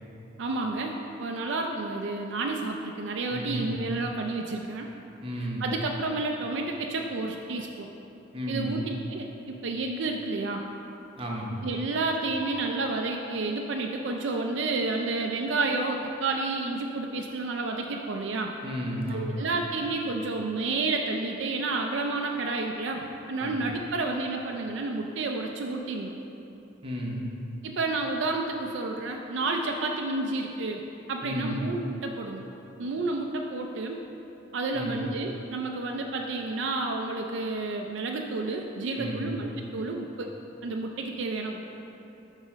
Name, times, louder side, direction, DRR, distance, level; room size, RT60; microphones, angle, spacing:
voice 1, 0.4-4.9 5.6-7.9 8.5-10.6 11.6-18.5 19.1-26.1 27.6-30.8 31.1-32.5 32.8-34.0 34.5-40.4 40.6-41.7, right 3 dB, 70° right, 2 dB, 0.4 m, -30 dB
voice 2, 3.3-3.8 5.2-5.7 8.3-8.8 11.2-11.6 18.6-19.4 23.4-23.6 26.8-27.3 31.2-31.6 34.7-35.0 39.0-39.3, equal, 30° right, -2 dB, 0.8 m, -33 dB
7.3 x 4.1 x 4.9 m, 2.9 s
head